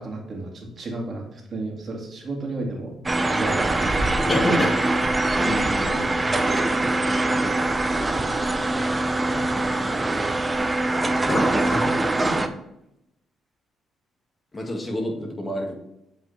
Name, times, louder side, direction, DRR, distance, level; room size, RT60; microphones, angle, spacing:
voice 1, 0.0-3.0 3.3-4.3, right 2 dB, 45° right, 0 dB, 2.2 m, -32 dB
sound 1, 3.1-12.5, right 2 dB, 20° right, 0.6 m, -23 dB
voice 2, 4.3-4.8 5.4-6.1 8.6-8.7 9.3-10.0 11.3-11.9 12.2-12.5 14.5-15.7, left 1 dB, 25° left, 2 dB, 1.8 m, -28 dB
7.8 x 5.4 x 3.3 m, 0.85 s
cardioid pair, 90°, 0 cm